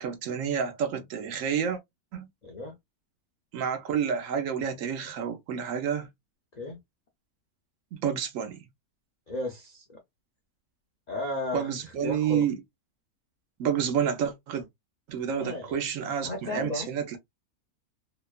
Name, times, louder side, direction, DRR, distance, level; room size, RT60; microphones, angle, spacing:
voice 1, 0.0-1.8 2.1-2.3 3.5-6.1 7.9-8.6 11.5-12.6 13.6-14.7 15.1-17.2, right 8 dB, 65° right, 1.0 m, -29 dB
voice 2, 2.4-2.8 6.5-6.8 9.3-10.0 11.1-11.7 12.0-12.5 15.4-15.8 16.2-16.9, left 2 dB, 90° left, 0.3 m, -34 dB
2.8 x 2.2 x 2.2 m
omnidirectional pair, 1.6 m